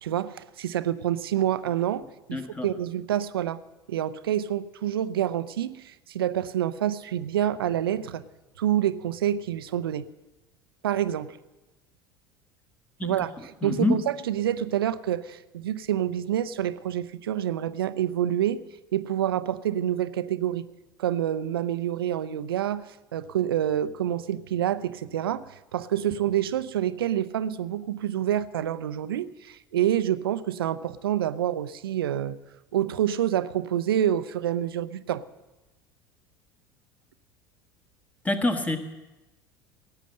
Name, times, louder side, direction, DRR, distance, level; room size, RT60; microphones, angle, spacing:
voice 1, 0.0-3.6 3.9-8.2 8.6-10.1 10.8-11.4 13.0-18.6 18.9-20.7 21.0-32.4 32.7-35.2, right 11 dB, 70° right, 15 dB, 0.5 m, -27 dB
voice 2, 2.3-2.7 13.0-13.1 13.6-13.9 38.2-38.8, left 2 dB, 10° left, 6 dB, 1.5 m, -25 dB
17.5 x 9.2 x 6.5 m, 1.1 s
figure-of-eight pair, 70°, 13 cm